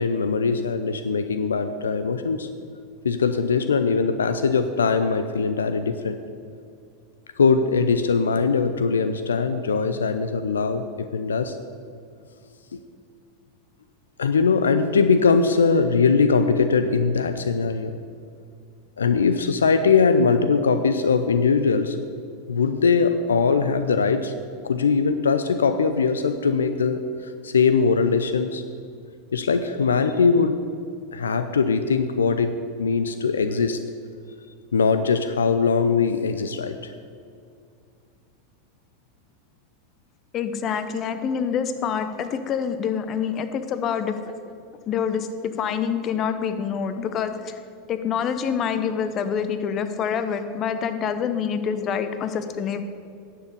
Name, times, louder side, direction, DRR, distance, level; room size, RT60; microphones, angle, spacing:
voice 1, 0.0-2.5 3.0-6.2 7.4-11.6 14.2-18.0 19.0-22.0 22.5-24.3 24.6-28.6 29.3-30.6 31.1-32.5 32.8-33.8 34.7-36.9, left 5 dB, 80° left, 10 dB, 0.5 m, -21 dB
voice 2, 40.3-44.3 44.9-47.6 47.9-52.8, left 7 dB, 35° left, 9 dB, 0.9 m, -26 dB
10.5 x 7.6 x 6.7 m, 2.4 s
figure-of-eight pair, 85°, 0 cm